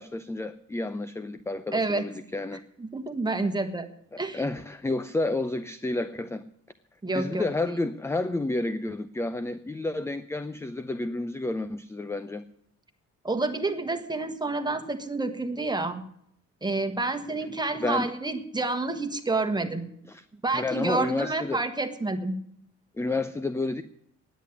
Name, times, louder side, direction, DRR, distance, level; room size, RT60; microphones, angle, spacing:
voice 1, 0.0-2.6 4.1-6.4 7.1-12.4 17.8-18.1 20.1-20.2 20.5-21.6 23.0-23.8, left 2 dB, 10° left, 13 dB, 0.5 m, -30 dB
voice 2, 1.7-2.1 2.8-3.9 4.2-4.4 7.0-7.4 13.2-16.0 16.6-19.8 20.4-22.4, right 3 dB, 15° right, 7 dB, 1.5 m, -29 dB
10.0 x 8.4 x 9.7 m, 0.70 s
cardioid pair, 90°, 30 cm